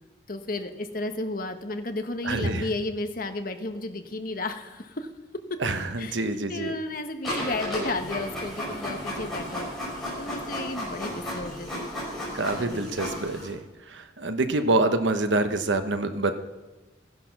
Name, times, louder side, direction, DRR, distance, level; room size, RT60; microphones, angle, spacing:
voice 1, 0.3-5.1 6.0-6.2 6.5-9.7 10.2-11.9 12.5-12.9, left 2 dB, 45° left, 7 dB, 1.1 m, -33 dB
voice 2, 2.2-2.7 5.6-6.7 12.3-16.3, right 2 dB, 75° right, 8 dB, 1.1 m, -26 dB
Printer, 7.2-13.5, equal, ahead, 6.4 m, -34 dB
15.5 x 11.0 x 6.0 m, 1.2 s
head